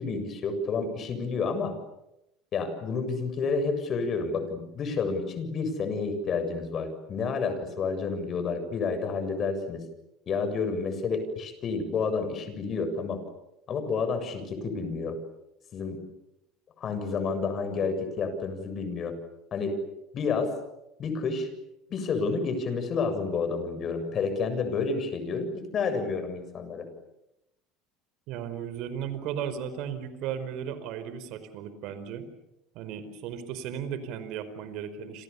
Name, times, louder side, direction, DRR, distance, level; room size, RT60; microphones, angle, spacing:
voice 1, 0.0-1.7 2.5-9.8 10.3-13.2 13.7-15.2 15.7-16.0 16.8-19.2 19.5-19.8 20.1-20.5 21.0-21.5 21.9-26.9, left 4 dB, 45° left, 9 dB, 7.3 m, -30 dB
voice 2, 28.3-32.3 32.7-35.2, right 8 dB, 65° right, 12 dB, 4.8 m, -35 dB
29.5 x 27.5 x 7.1 m, 0.89 s
hypercardioid pair, 80°, 0 cm